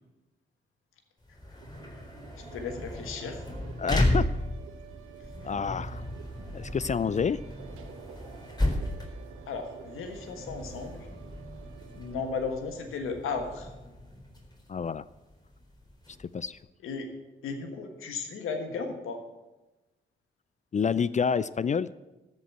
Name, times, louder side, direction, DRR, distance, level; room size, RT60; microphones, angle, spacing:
sound 1, 1.2-16.6, left 1 dB, 20° left, 4.1 m, -34 dB
sound 2, 1.6-12.3, right 6 dB, 85° right, 1.0 m, -49 dB
voice 1, 2.5-3.4 5.6-5.7 9.5-11.1 11.9-13.7 16.8-17.1 17.4-19.2, left 4 dB, 80° left, 5 dB, 1.5 m, -35 dB
voice 2, 3.8-4.2 5.4-6.0 6.5-7.4 14.7-15.0 16.2-16.6 20.7-21.9, left 6 dB, 35° left, 18 dB, 0.4 m, -28 dB
13.5 x 5.3 x 8.0 m, 1.1 s
supercardioid pair, 40°, 21 cm